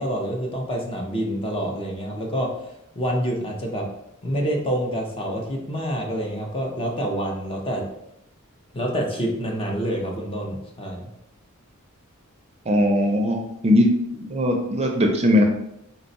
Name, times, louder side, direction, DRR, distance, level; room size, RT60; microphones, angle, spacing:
voice 1, 0.0-2.5 2.9-3.9 4.2-7.9 8.7-11.1, equal, 25° left, 0 dB, 0.7 m, -27 dB
voice 2, 12.7-13.9 14.1-15.4, left 1 dB, 30° right, 2 dB, 0.5 m, -20 dB
4.0 x 2.3 x 3.9 m, 0.80 s
head